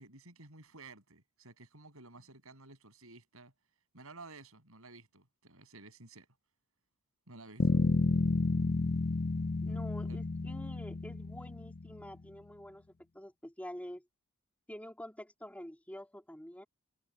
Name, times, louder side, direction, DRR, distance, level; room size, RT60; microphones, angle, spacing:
voice 1, 0.0-3.5 3.9-6.3 7.3-7.8 10.1-10.2, right 3 dB, 70° right, 7.9 m, -53 dB
Bass guitar, 7.6-12.0, left 3 dB, 45° left, 0.6 m, -31 dB
voice 2, 9.6-12.8 13.1-14.1 14.7-16.6, equal, 5° left, 3.4 m, -47 dB
head